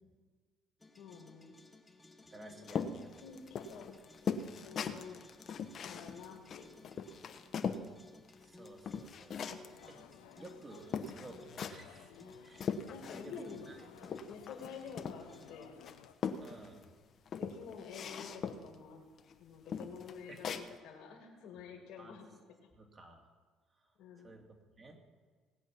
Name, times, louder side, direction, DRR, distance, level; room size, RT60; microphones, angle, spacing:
sound 1, 0.8-15.7, left 2 dB, 15° left, 1.3 m, -58 dB
voice 1, 1.0-1.5 2.4-2.9 3.2-3.9 4.6-5.2 5.8-6.9 12.9-13.7 14.3-15.7 17.3-19.0 19.4-22.3 24.0-24.4, left 6 dB, 70° left, -1 dB, 2.1 m, -49 dB
voice 2, 2.3-2.8 8.4-9.4 9.9-10.0 10.4-12.1 12.4-12.7 13.1-13.9 16.4-16.9 20.3-20.7 22.0-22.1 22.7-23.3 23.8-23.9 24.2-25.0, right 2 dB, 30° right, 3 dB, 2.4 m, -54 dB
sound 2, 2.7-7.9 8.3-9.8 10.4-10.5 10.9-11.9 12.3-13.5 13.7-15.4 15.8-16.8 17.3-18.7 19.2-19.3 19.7-20.7, left 6 dB, 55° left, 1.0 m, -40 dB
sound 3, 9.7-16.1, left 11 dB, 90° left, 0.7 m, -58 dB
18.0 x 7.8 x 5.9 m, 1.5 s
supercardioid pair, 75°, 0 cm